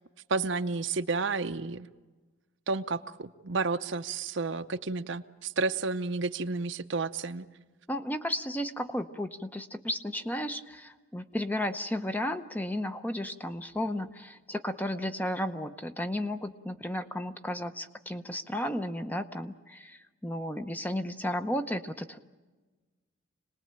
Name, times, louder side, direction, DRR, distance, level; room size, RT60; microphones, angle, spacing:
voice 1, 0.3-1.9 2.7-7.5, right 4 dB, 60° right, 10 dB, 0.7 m, -31 dB
voice 2, 7.9-22.2, left 1 dB, 10° left, 8 dB, 0.8 m, -33 dB
26.5 x 19.5 x 8.8 m, 1.3 s
head